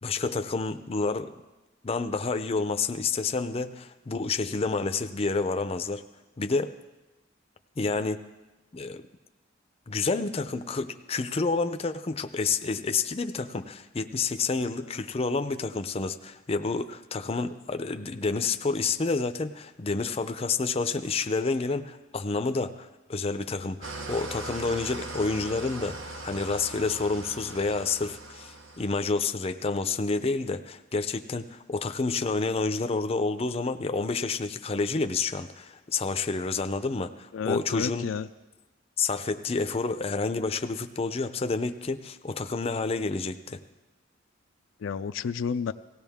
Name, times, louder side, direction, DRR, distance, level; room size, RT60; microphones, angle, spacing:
voice 1, 0.0-1.4 1.8-6.0 6.4-6.7 7.8-8.2 8.7-9.0 9.9-38.0 39.0-43.6, left 4 dB, 30° left, 8 dB, 0.5 m, -29 dB
Engine starting / Idling, 23.8-29.2, right 2 dB, 75° right, 1.2 m, -40 dB
voice 2, 37.3-38.3 44.8-45.7, left 6 dB, 80° left, 11 dB, 0.4 m, -31 dB
18.0 x 16.0 x 3.5 m, 1.1 s
head